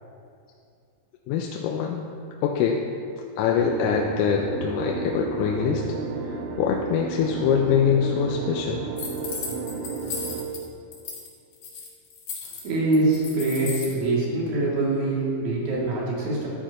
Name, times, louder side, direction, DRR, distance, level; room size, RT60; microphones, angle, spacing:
voice 1, 1.3-2.0 2.4-2.8 3.4-5.9 6.2-8.8, left 7 dB, 85° left, 1 dB, 3.4 m, -24 dB
sound 1, 3.6-10.5, right 4 dB, 80° right, 3.3 m, -32 dB
sound 2, 9.0-10.6 10.9-11.3 11.5-13.9, left 5 dB, 60° left, 2.3 m, -35 dB
voice 2, 12.6-16.5, right 2 dB, 65° right, -6 dB, 4.9 m, -24 dB
13.5 x 13.0 x 3.0 m, 2.5 s
omnidirectional pair, 5.8 m